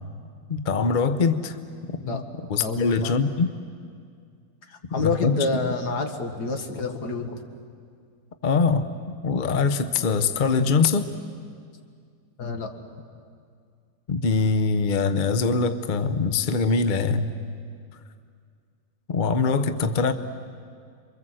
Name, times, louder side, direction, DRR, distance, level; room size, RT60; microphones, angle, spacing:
voice 1, 0.5-1.6 2.1-2.2 2.5-3.5 5.0-5.7 8.4-11.1 14.1-17.3 19.1-20.1, left 4 dB, 45° left, 10 dB, 0.6 m, -23 dB
voice 2, 2.6-3.1 4.7-7.4 12.4-12.8, left 4 dB, 60° left, 5 dB, 2.2 m, -28 dB
28.0 x 23.5 x 7.7 m, 2.2 s
omnidirectional pair, 2.0 m